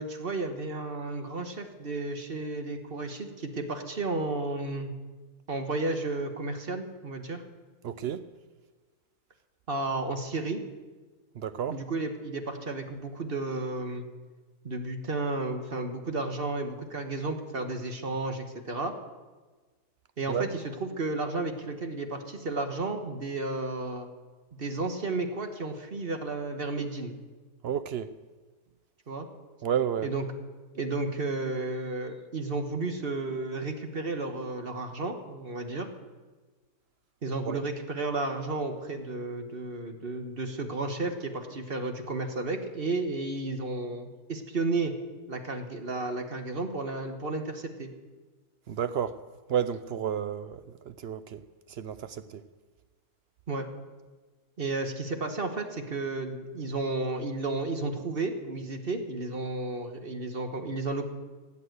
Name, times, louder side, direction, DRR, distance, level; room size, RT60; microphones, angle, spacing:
voice 1, 0.0-4.9 5.5-7.4 9.7-10.6 11.7-14.1 14.6-18.9 20.2-24.1 24.5-27.2 29.1-29.3 30.0-30.2 30.7-35.9 37.2-44.9 45.3-47.9 53.5-53.7 54.6-61.1, right 3 dB, 40° right, 1.3 m, -32 dB
voice 2, 7.8-8.3 11.3-11.8 20.3-20.5 27.6-28.1 29.6-30.1 37.5-37.6 48.7-49.2 49.5-51.4 51.7-52.4, right 8 dB, 65° right, 0.6 m, -31 dB
16.5 x 8.4 x 8.0 m
omnidirectional pair, 1.7 m